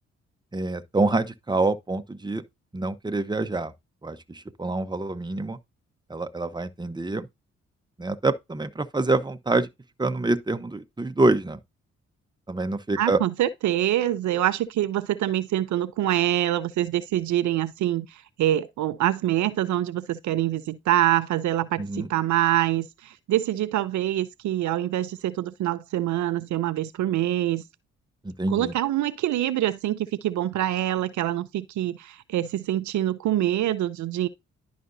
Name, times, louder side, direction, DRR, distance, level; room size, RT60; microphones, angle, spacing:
voice 1, 0.5-2.4 2.7-3.7 4.0-5.6 6.1-7.3 8.0-9.7 10.0-11.6 12.5-13.2 21.8-22.1 28.2-28.7, right 2 dB, 15° right, 1.0 m, -26 dB
voice 2, 13.0-27.6 28.5-34.3, right 13 dB, 75° right, 0.6 m, -25 dB
11.0 x 5.1 x 2.7 m
supercardioid pair, 50°, 29 cm